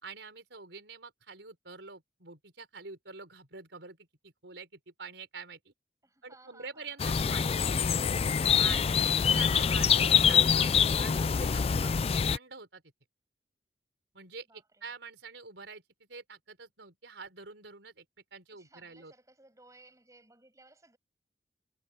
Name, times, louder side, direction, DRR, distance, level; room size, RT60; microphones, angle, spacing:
voice 1, 0.0-5.7 6.2-7.9 8.6-12.8 14.1-18.0 18.3-19.1, right 4 dB, 85° right, 4.5 m, -46 dB
voice 2, 6.0-7.0 14.5-14.9 18.5-21.0, right 2 dB, 20° right, 7.8 m, -59 dB
sound 1, 7.0-12.4, left 7 dB, 35° left, 0.3 m, -25 dB
head